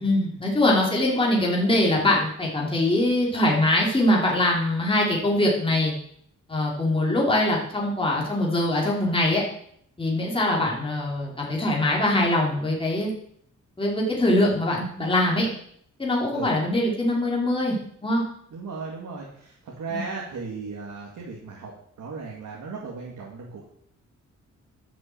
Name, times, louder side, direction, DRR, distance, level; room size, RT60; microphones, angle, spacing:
voice 1, 0.0-5.9 6.5-9.4 10.0-13.1 13.8-15.5 16.0-17.7 18.0-18.2 19.9-20.0, left 1 dB, 15° left, -3 dB, 2.9 m, -23 dB
voice 2, 18.5-21.7 22.0-23.7, right 4 dB, 80° right, -2 dB, 2.3 m, -36 dB
11.0 x 6.2 x 7.5 m, 0.67 s
wide cardioid pair, 120°, 31 cm